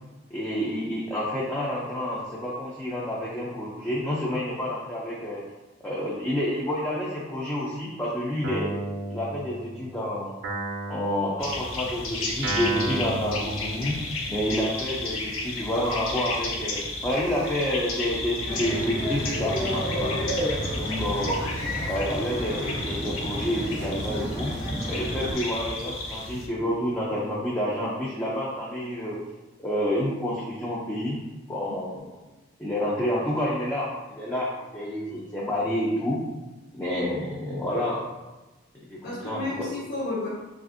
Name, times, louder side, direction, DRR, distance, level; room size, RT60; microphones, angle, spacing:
voice 1, 0.3-5.4 5.8-8.7 9.1-10.3 10.9-14.0 14.3-20.2 20.8-21.5 21.9-24.5 24.9-29.2 29.6-31.2 31.5-32.1 32.6-36.2 36.7-38.0 38.9-39.7, equal, 10° left, -6 dB, 0.4 m, -29 dB
Guitar, 8.4-9.9 10.4-14.3, right 2 dB, 55° right, 0.5 m, -33 dB
sound 1, 11.4-26.5, left 2 dB, 90° left, 0.5 m, -33 dB
sound 2, 18.4-25.3, equal, 70° left, 1.0 m, -31 dB
voice 2, 20.8-21.2 39.0-40.3, left 2 dB, 50° left, -6 dB, 0.7 m, -32 dB
3.3 x 2.5 x 2.5 m, 1.1 s
head